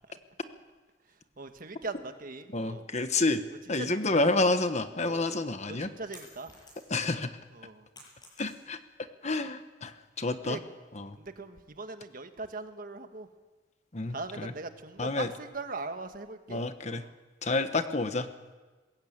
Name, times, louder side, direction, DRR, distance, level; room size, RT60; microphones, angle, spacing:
voice 1, 1.1-2.8 3.1-3.3 3.8-4.5 5.0-5.4 5.7-6.5 7.5-7.9 10.4-10.6 11.2-13.3 14.1-16.6 16.9-17.1, right 3 dB, 50° right, 8 dB, 1.4 m, -41 dB
voice 2, 2.5-3.4 3.7-5.9 6.9-7.4 8.4-8.8 9.2-10.6 10.9-11.2 13.9-14.5 15.0-15.3 16.5-17.0 17.4-18.3, left 2 dB, 40° left, 9 dB, 1.2 m, -29 dB
sound 1, 6.1-7.1 7.5-8.9, left 2 dB, 25° left, 7.8 m, -53 dB
21.0 x 16.0 x 8.8 m, 1.3 s
head